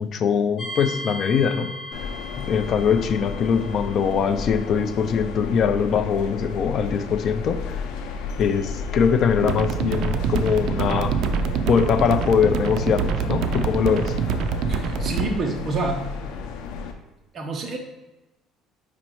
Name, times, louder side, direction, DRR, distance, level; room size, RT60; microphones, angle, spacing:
voice 1, 0.0-1.7 2.4-7.8 8.4-11.1 11.7-14.2, left 6 dB, 45° left, 9 dB, 0.5 m, -22 dB
sound 1, 0.6-15.4, left 2 dB, 25° left, 0.9 m, -42 dB
sound 2, 1.9-16.9, left 5 dB, 85° left, 0.6 m, -33 dB
sound 3, 9.4-15.3, right 6 dB, 60° right, 0.4 m, -25 dB
voice 2, 14.7-16.3 17.3-17.8, right 2 dB, 35° right, 2 dB, 0.9 m, -28 dB
5.1 x 4.3 x 4.6 m, 1.0 s
cardioid pair, 145°, 0 cm